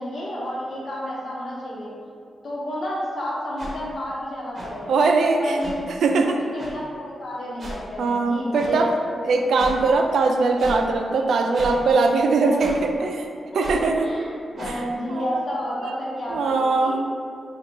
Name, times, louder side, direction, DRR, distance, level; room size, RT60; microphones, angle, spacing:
voice 1, 0.0-2.2 2.4-4.9 5.4-6.2 6.5-8.9 9.3-9.4 11.1-11.2 11.8-11.9 12.4-13.1 13.7-17.0, equal, 60° left, -5 dB, 0.9 m, -31 dB
sound 1, 3.6-3.7 4.5-4.7 5.6-5.7 6.6-6.7 7.6-7.8 8.5-8.7 9.5-9.7 10.6-10.8 11.5-11.7 12.6-12.8 13.6-13.8 14.6-14.8, right 2 dB, 40° right, 1.0 m, -34 dB
voice 2, 4.9-5.6 5.9-6.4 8.0-8.9 9.2-13.2 13.5-14.1 14.6-14.8 15.1-15.4 16.3-17.0, right 3 dB, 85° right, 3 dB, 0.3 m, -21 dB
3.7 x 2.3 x 4.4 m, 2.3 s
wide cardioid pair, 115°, 0 cm